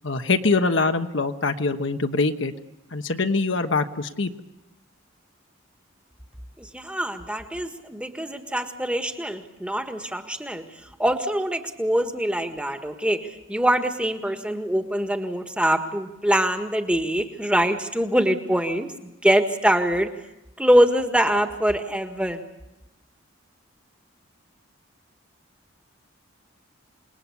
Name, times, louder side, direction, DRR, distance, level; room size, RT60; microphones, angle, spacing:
voice 1, 0.0-2.5 2.9-4.3, left 3 dB, 65° left, 7 dB, 1.2 m, -23 dB
voice 2, 6.6-20.1 20.6-22.4, equal, 5° right, 6 dB, 1.7 m, -24 dB
28.0 x 20.5 x 8.4 m, 0.93 s
head